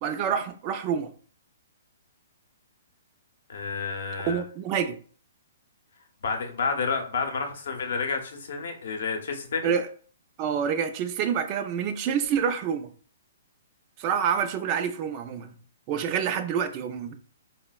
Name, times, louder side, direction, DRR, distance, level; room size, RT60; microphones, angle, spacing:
voice 1, 0.0-1.1 4.2-5.0 9.6-9.9 10.4-12.9 14.0-15.6 15.9-17.1, right 7 dB, 30° right, 0.3 m, -27 dB
voice 2, 3.5-4.4 6.2-9.7, left 5 dB, 70° left, 0.6 m, -30 dB
4.1 x 2.0 x 2.2 m
hypercardioid pair, 155°, 0 cm